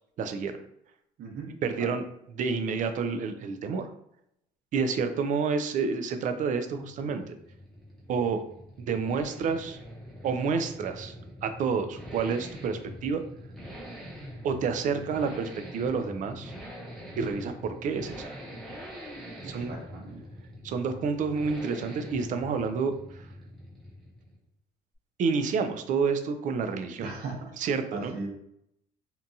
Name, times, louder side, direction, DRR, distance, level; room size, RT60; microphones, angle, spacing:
voice 1, 0.2-0.6 1.6-2.0 2.4-3.9 4.7-7.3 8.1-8.4 8.8-9.8 10.2-11.1 11.4-13.2 14.4-16.5 17.2-18.3 19.4-19.7 20.6-22.9 25.2-27.1 27.6-28.1, right 5 dB, 50° right, 8 dB, 0.4 m, -29 dB
sound 1, 6.6-24.5, equal, ahead, 0.8 m, -44 dB
voice 2, 19.4-20.2 27.0-27.4 27.9-28.3, right 3 dB, 65° right, -1 dB, 0.9 m, -38 dB
2.8 x 2.3 x 2.6 m, 0.76 s
cardioid pair, 110°, 17 cm